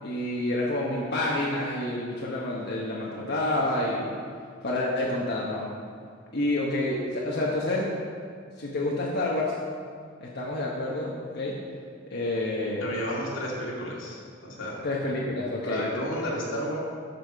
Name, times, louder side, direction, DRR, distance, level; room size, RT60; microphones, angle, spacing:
voice 1, 0.0-4.2 4.6-5.7 6.3-7.9 8.6-9.5 10.2-11.6 12.1-13.0 14.8-15.9, left 1 dB, 55° left, -4 dB, 1.2 m, -28 dB
voice 2, 12.8-14.8 15.6-16.8, equal, 85° left, -4 dB, 2.4 m, -32 dB
12.0 x 5.8 x 4.7 m, 2.1 s
head